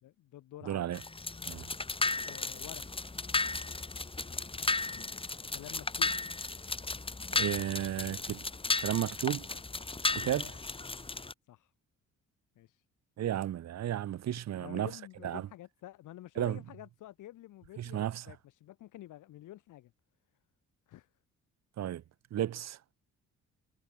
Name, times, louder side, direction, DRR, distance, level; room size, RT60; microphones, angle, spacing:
voice 1, 0.0-1.0 1.4-1.5 2.3-2.8 4.3-5.2 5.5-6.1 9.5-9.6 10.4-10.5 11.5-11.7 12.6-12.8 14.3-19.9 20.9-21.1, left 14 dB, 85° left, 4.3 m, -50 dB
voice 2, 0.6-1.0 1.5-1.7 7.3-8.5 8.8-9.5 10.1-10.5 13.2-14.9 15.2-15.5 16.4-16.6 17.8-18.3 21.8-22.0 22.3-22.8, right 11 dB, 60° right, 1.1 m, -33 dB
sound 1, 0.9-11.3, left 3 dB, 20° left, 1.7 m, -35 dB
cardioid pair, 90°, 30 cm